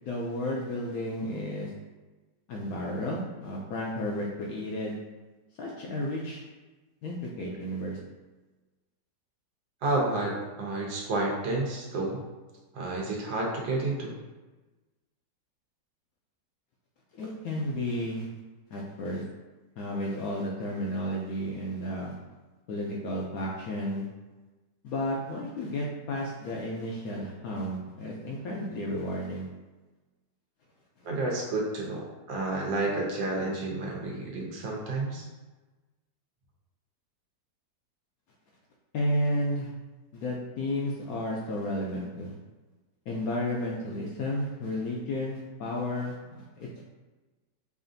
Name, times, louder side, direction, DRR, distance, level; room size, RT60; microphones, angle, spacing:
voice 1, 0.1-1.7 2.5-5.0 5.6-6.4 7.0-8.0 17.1-18.3 18.7-19.2 19.8-22.2 22.7-24.1 24.8-29.5 38.9-39.7 40.1-42.3 43.1-46.8, left 1 dB, 70° left, -3 dB, 0.9 m, -32 dB
voice 2, 9.8-12.2 12.7-14.1 31.0-35.2, right 2 dB, 80° right, -2 dB, 1.5 m, -30 dB
5.0 x 2.5 x 2.6 m, 1.2 s
omnidirectional pair, 1.9 m